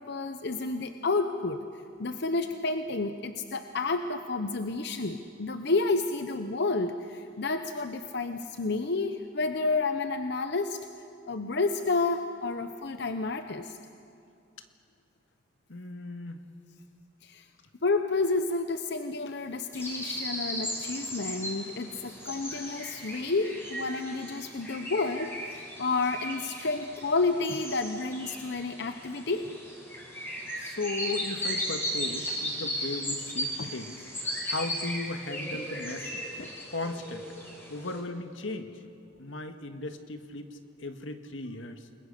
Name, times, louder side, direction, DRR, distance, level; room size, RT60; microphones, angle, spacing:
voice 1, 0.0-1.7 2.0-10.8 11.3-13.8 17.2-17.4 17.8-29.5 33.6-33.7 36.4-36.5, left 3 dB, 60° left, 8 dB, 0.9 m, -30 dB
voice 2, 15.7-16.4 30.6-34.0 34.5-36.2 36.7-37.3 37.7-38.7 39.2-41.9, left 2 dB, 85° left, 7 dB, 1.7 m, -36 dB
sound 1, 19.7-38.0, equal, 10° left, 4.5 m, -36 dB
28.5 x 21.5 x 6.7 m, 2.4 s
head